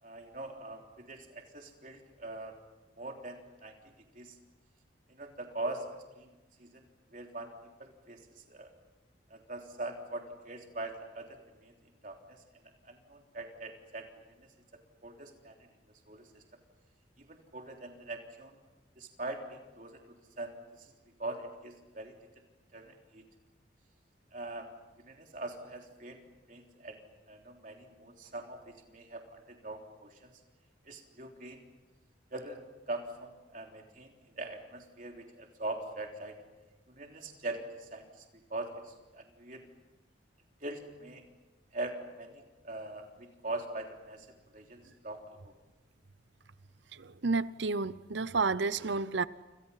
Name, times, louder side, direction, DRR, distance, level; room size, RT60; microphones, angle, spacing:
voice 1, 0.0-2.5 3.0-4.4 5.1-5.9 6.2-6.3 6.6-6.8 7.1-7.5 7.8-8.7 9.3-11.7 12.0-12.4 12.8-14.1 14.4-14.5 15.0-15.6 16.1-16.4 17.2-18.6 19.0-20.9 21.2-22.2 22.7-23.2 24.3-24.7 25.0-26.2 26.5-30.3 30.8-31.6 32.3-36.4 36.9-38.2 38.5-39.6 40.6-41.2 41.7-44.3 44.5-45.5, right 2 dB, 45° right, 2 dB, 3.5 m, -42 dB
voice 2, 46.9-49.3, right 4 dB, 70° right, 16 dB, 0.8 m, -31 dB
30.0 x 27.5 x 5.8 m, 1.1 s
head